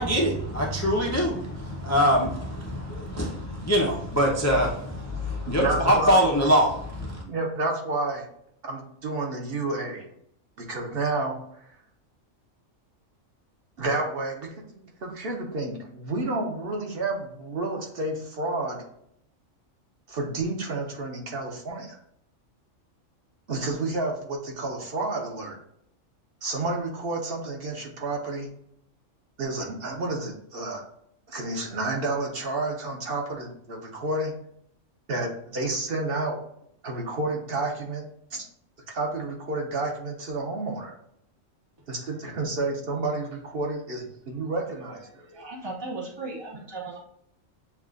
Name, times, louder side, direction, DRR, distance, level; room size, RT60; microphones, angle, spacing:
voice 1, 0.0-7.2, equal, 20° left, -2 dB, 0.4 m, -24 dB
voice 2, 5.5-6.2 7.3-8.3 8.6-10.0 10.6-11.6 13.8-18.8 20.1-22.0 23.5-25.6 26.4-28.5 29.4-30.8 31.3-34.3 35.1-36.4 36.8-38.0 38.3-38.5 38.9-40.9 41.9-45.3, right 2 dB, 50° right, 0 dB, 1.0 m, -30 dB
voice 3, 45.2-47.0, right 3 dB, 35° right, -2 dB, 0.4 m, -36 dB
7.0 x 2.4 x 2.4 m, 0.70 s
omnidirectional pair, 1.3 m